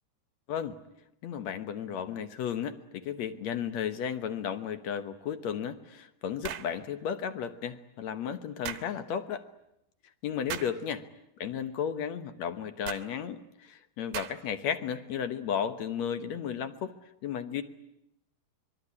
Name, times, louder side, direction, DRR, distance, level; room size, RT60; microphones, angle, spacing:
voice 1, 1.2-9.4 10.2-11.0 11.4-16.9 17.2-17.6, left 8 dB, 60° left, 10 dB, 2.0 m, -34 dB
sound 1, 6.4-6.7 8.6-8.9 10.5-10.8 12.8-13.1 14.1-14.5, right 10 dB, 85° right, 3.2 m, -37 dB
25.5 x 22.5 x 9.8 m, 0.81 s
omnidirectional pair, 4.2 m